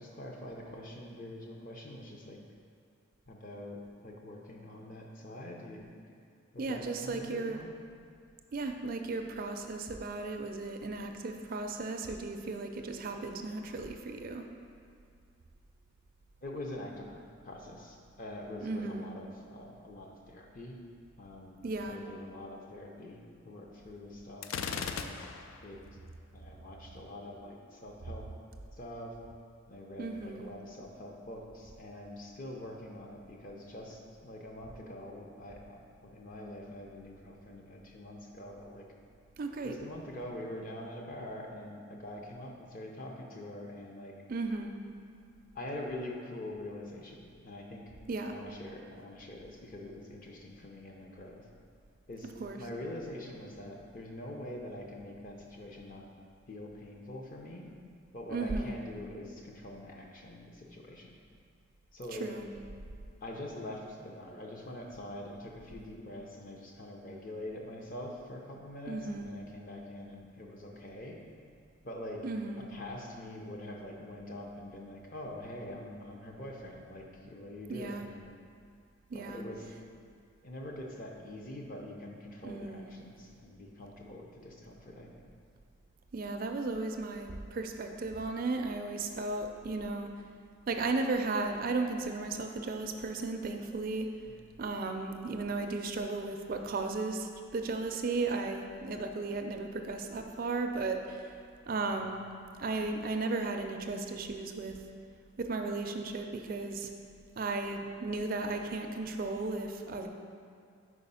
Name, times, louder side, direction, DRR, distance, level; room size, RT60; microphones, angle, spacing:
voice 1, 0.0-2.4 3.3-5.8 6.5-7.7 16.4-20.8 21.2-21.6 21.9-25.2 25.6-25.8 26.3-28.3 28.7-29.2 29.7-38.9 39.6-44.1 45.5-47.8 48.2-51.5 52.1-52.3 52.6-56.0 56.5-57.7 58.1-61.2 61.9-62.3 63.2-71.2 71.8-72.2 72.7-78.2 79.1-79.7 80.4-85.2 94.3-94.4 101.9-102.0, left 1 dB, 40° left, 0 dB, 0.7 m, -44 dB
voice 2, 6.6-7.6 8.5-14.4 18.6-19.1 21.6-22.0 30.0-30.5 39.4-39.8 44.3-44.7 48.1-48.4 52.4-52.6 58.3-58.8 62.1-62.5 68.9-69.3 72.2-72.7 77.7-78.1 79.1-79.4 82.4-82.8 86.1-90.1 90.7-94.1 94.6-101.3 101.7-102.2 102.6-104.7 105.4-106.9 107.4-110.1, right 3 dB, 45° right, 4 dB, 0.4 m, -35 dB
Gunshot gunfire, 24.4-25.7, left 6 dB, 80° left, 0.4 m, -37 dB
4.9 x 4.9 x 5.5 m, 2.2 s
head